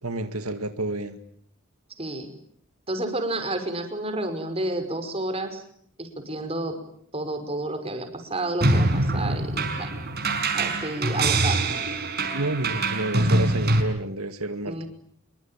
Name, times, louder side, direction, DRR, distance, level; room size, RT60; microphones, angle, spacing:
voice 1, 0.0-1.2 12.3-14.8, right 2 dB, 90° right, 8 dB, 2.1 m, -30 dB
voice 2, 2.0-2.3 2.9-5.6 6.0-6.8 7.1-9.9 10.5-11.7 14.7-14.9, right 2 dB, 25° right, 7 dB, 5.5 m, -30 dB
sound 1, 8.6-13.8, right 2 dB, 50° right, 5.4 m, -24 dB
27.0 x 23.0 x 9.1 m, 0.65 s
head